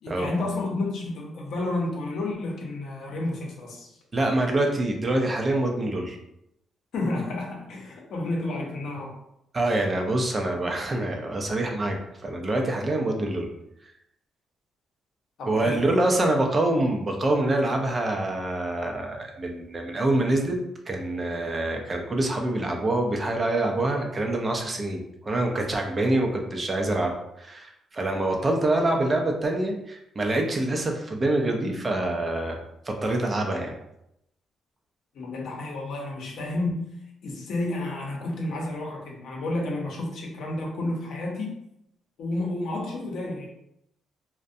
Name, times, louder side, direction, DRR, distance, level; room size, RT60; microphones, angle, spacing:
voice 1, 0.0-4.0 6.9-9.2 15.4-15.9 35.1-41.6 42.2-43.5, left 2 dB, 70° left, -1 dB, 0.7 m, -31 dB
voice 2, 4.1-6.2 9.5-12.0 12.2-13.5 15.5-20.6 20.9-32.6 32.9-33.8, right 2 dB, 30° right, 2 dB, 0.5 m, -25 dB
2.5 x 2.1 x 2.5 m, 0.81 s
cardioid pair, 90°, 0 cm